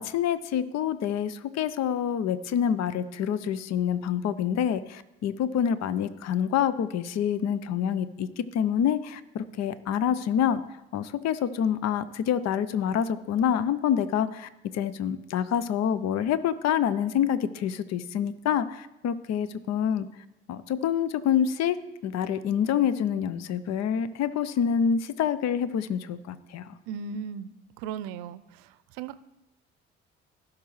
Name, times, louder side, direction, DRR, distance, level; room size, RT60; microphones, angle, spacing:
voice 1, 0.0-10.6 10.9-20.1 20.5-21.8 22.0-26.7, left 8 dB, 55° left, 15 dB, 0.7 m, -27 dB
voice 2, 26.9-28.7 29.0-29.2, right 6 dB, 75° right, 14 dB, 0.6 m, -37 dB
16.5 x 6.0 x 3.1 m, 0.95 s
hypercardioid pair, 50°, 31 cm